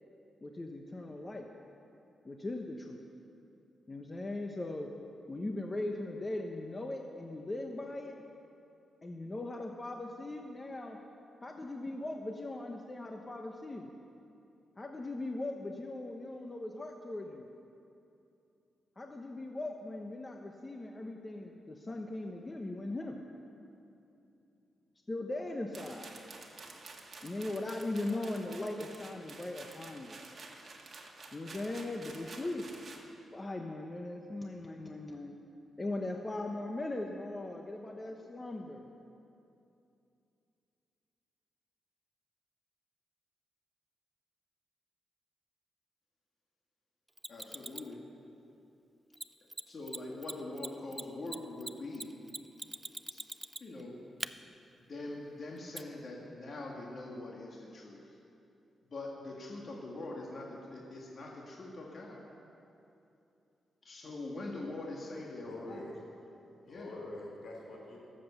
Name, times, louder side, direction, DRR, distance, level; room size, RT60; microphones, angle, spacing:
voice 1, 0.4-1.5 2.2-3.0 3.9-4.9 5.3-8.2 9.0-11.0 11.4-13.9 14.8-17.5 19.0-23.2 25.1-26.1 27.2-30.2 31.3-35.4 35.8-38.9, left 2 dB, 25° left, 2 dB, 0.8 m, -39 dB
sound 1, 25.7-33.0, right 3 dB, 45° right, 1.7 m, -50 dB
Mechanisms, 47.2-47.9 49.1-49.2 49.5-49.6 49.9-50.0 50.2-53.8 54.2-54.3 55.8-55.9, right 1 dB, 10° right, 0.4 m, -41 dB
voice 2, 47.3-48.0 49.7-52.1 53.1-53.2 53.6-54.0 54.9-58.0 58.9-62.3 63.8-65.8 66.6-67.1, left 2 dB, 45° left, -2 dB, 1.9 m, -43 dB
voice 3, 65.4-65.9 66.7-68.0, left 2 dB, 70° left, -2 dB, 3.6 m, -45 dB
17.0 x 7.7 x 7.0 m, 2.7 s
cardioid pair, 95°, 0 cm